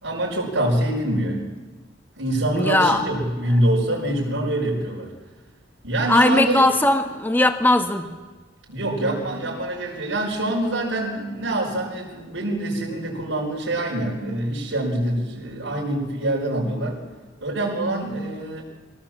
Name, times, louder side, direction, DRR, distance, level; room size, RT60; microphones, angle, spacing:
voice 1, 0.0-1.5 2.2-5.1 5.8-6.6 8.7-17.0 17.4-18.6, right 1 dB, 90° right, -3 dB, 5.5 m, -25 dB
voice 2, 2.5-3.0 6.1-8.0, left 1 dB, 10° left, 5 dB, 1.3 m, -19 dB
23.0 x 18.5 x 7.5 m, 1.3 s
head